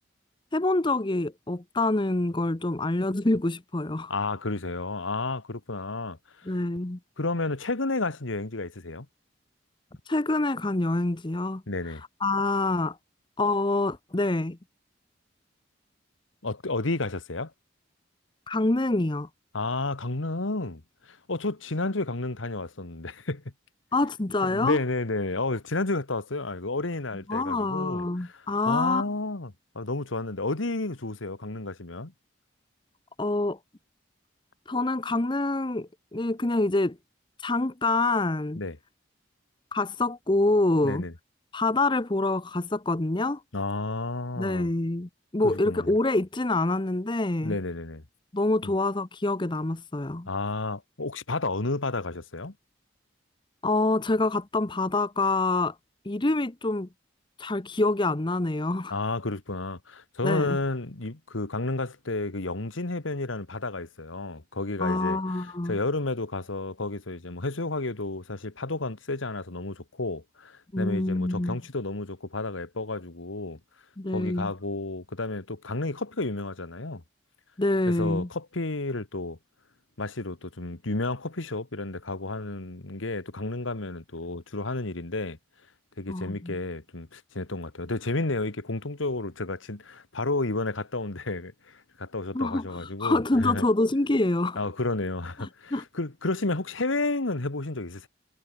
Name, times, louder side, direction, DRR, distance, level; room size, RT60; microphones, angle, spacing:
voice 1, 0.5-4.1 6.5-7.0 10.1-11.6 12.2-13.0 13.4-14.6 18.5-19.3 23.9-24.8 27.3-29.0 33.2-33.6 34.7-37.0 37.4-38.6 39.7-41.0 41.5-43.4 44.4-47.6 48.3-50.3 53.6-55.7 56.0-56.9 57.4-58.9 60.2-60.6 64.8-65.8 70.7-71.6 74.0-74.5 77.6-78.3 86.1-86.6 92.3-94.6 95.4-95.8, left 2 dB, 25° left, 0.8 m, -26 dB
voice 2, 4.1-6.5 7.2-9.1 11.7-12.0 16.4-17.5 19.5-23.4 24.4-32.1 38.6-38.8 40.8-41.1 43.5-44.7 45.4-45.9 47.4-48.0 48.6-48.7 50.3-52.5 58.9-73.6 74.1-77.0 77.8-79.4 80.0-85.4 86.0-93.6 94.5-98.1, left 2 dB, 90° left, 1.7 m, -31 dB
head